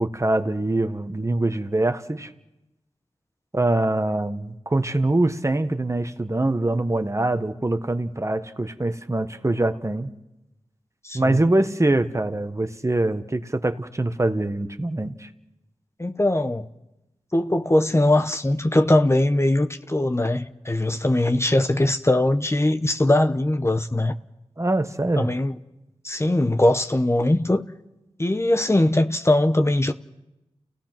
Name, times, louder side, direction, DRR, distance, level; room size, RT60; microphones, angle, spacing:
voice 1, 0.0-2.3 3.5-10.1 11.1-15.3 24.6-25.3, right 2 dB, 25° right, 1.4 m, -24 dB
voice 2, 11.0-11.4 16.0-16.7 17.3-24.1 25.2-25.5 26.0-27.7 28.2-29.9, left 1 dB, 25° left, 1.0 m, -21 dB
30.0 x 17.0 x 6.1 m
cardioid pair, 40°, 11 cm